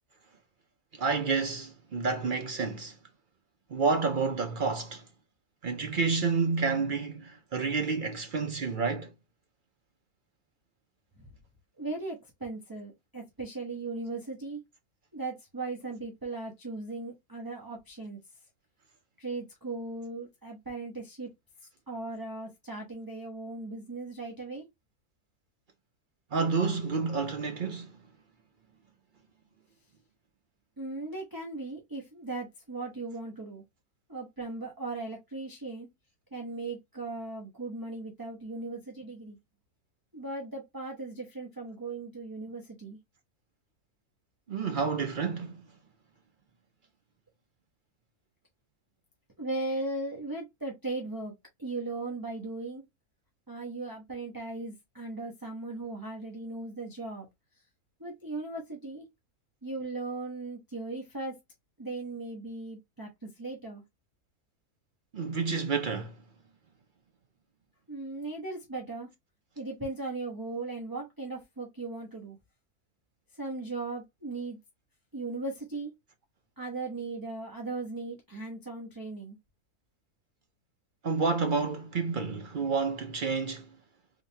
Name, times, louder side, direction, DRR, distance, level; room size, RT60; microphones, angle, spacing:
voice 1, 0.9-3.0 3.7-5.1 5.6-9.1 26.3-27.9 44.5-45.6 65.1-66.1 81.0-83.7, right 4 dB, 65° right, 0.5 m, -29 dB
voice 2, 11.8-14.6 15.1-18.2 19.2-21.3 21.9-24.7 30.8-33.6 34.1-35.9 36.3-39.4 40.1-43.0 49.4-51.3 51.6-52.8 53.5-57.3 58.0-59.1 59.6-61.4 61.8-63.8 67.9-69.1 69.6-72.4 73.3-74.6 75.1-75.9 76.6-79.4, right 2 dB, 15° right, 0.8 m, -37 dB
3.7 x 3.4 x 2.7 m
omnidirectional pair, 1.6 m